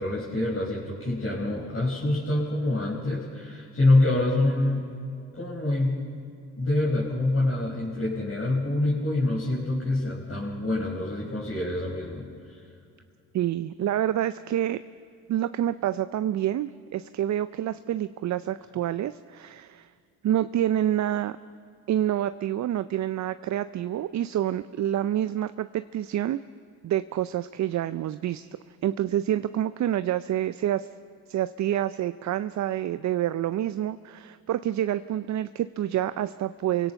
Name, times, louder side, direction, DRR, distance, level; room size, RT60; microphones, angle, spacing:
voice 1, 0.0-4.9 5.3-6.0 6.6-12.3, left 2 dB, 35° left, -5 dB, 4.7 m, -26 dB
voice 2, 13.3-14.8 15.3-19.9 20.2-21.4 21.9-26.4 26.8-28.5 28.8-30.9 31.3-36.9, right 12 dB, 45° right, 13 dB, 0.5 m, -27 dB
28.5 x 17.0 x 5.8 m, 2.3 s
supercardioid pair, 65°, 39 cm